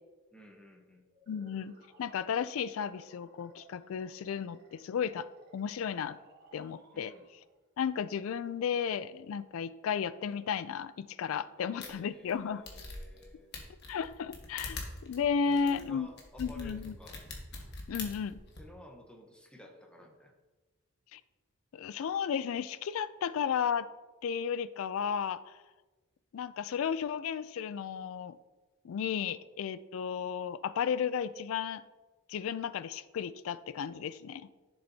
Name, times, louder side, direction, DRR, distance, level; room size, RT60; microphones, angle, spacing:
voice 1, 0.3-1.1 6.9-7.3 11.6-13.6 15.4-17.2 18.6-20.3 29.3-29.5, equal, 5° left, 1 dB, 0.9 m, -54 dB
sound 1, 1.1-7.6, right 1 dB, 45° right, 1.2 m, -59 dB
voice 2, 1.3-6.2 6.5-7.1 7.8-12.6 13.9-16.1 16.4-16.9 17.9-18.4 21.1-21.2 21.7-23.9 24.2-25.6 26.3-28.4 28.8-31.8 32.3-34.5, left 7 dB, 70° left, 15 dB, 0.3 m, -34 dB
sound 2, 11.8-11.9 12.3-12.4 12.7-13.2 13.5-18.6, left 3 dB, 50° left, 1.4 m, -43 dB
11.0 x 6.9 x 2.7 m, 1.2 s
head